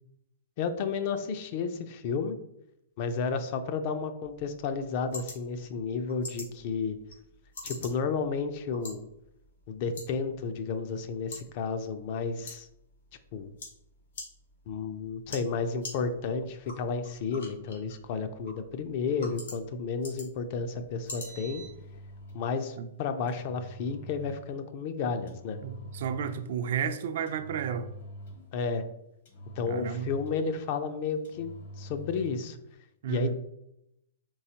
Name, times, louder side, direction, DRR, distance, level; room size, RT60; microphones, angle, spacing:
voice 1, 0.6-2.4 3.0-7.0 7.6-9.1 9.7-12.7 13.3-13.5 14.7-21.6 22.3-25.6 28.5-28.8 29.6-31.5 31.8-32.6 33.1-33.3, left 5 dB, 45° left, 9 dB, 0.4 m, -32 dB
sound 1, 4.2-22.2, left 2 dB, 85° left, 1.7 m, -48 dB
Engine, 21.0-22.5 23.3-24.5 25.3-26.5 27.3-28.6 29.3-30.6 31.2-32.5, right 1 dB, 65° left, 1.3 m, -45 dB
voice 2, 25.6-27.9 29.7-30.1 33.0-33.3, right 7 dB, 65° right, 9 dB, 0.4 m, -32 dB
4.6 x 3.4 x 2.8 m, 0.81 s
hypercardioid pair, 150°, 0 cm